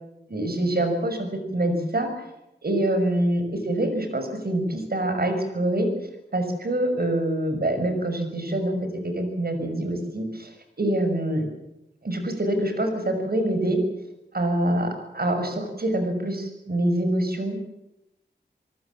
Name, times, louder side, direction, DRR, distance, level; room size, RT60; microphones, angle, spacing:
voice 1, 0.3-1.3 1.5-2.1 2.6-5.9 6.3-8.8 9.0-11.5 12.0-13.8 14.3-17.6, right 1 dB, 60° right, 6 dB, 6.1 m, -25 dB
26.5 x 18.5 x 7.6 m, 0.89 s
wide cardioid pair, 55°, 18 cm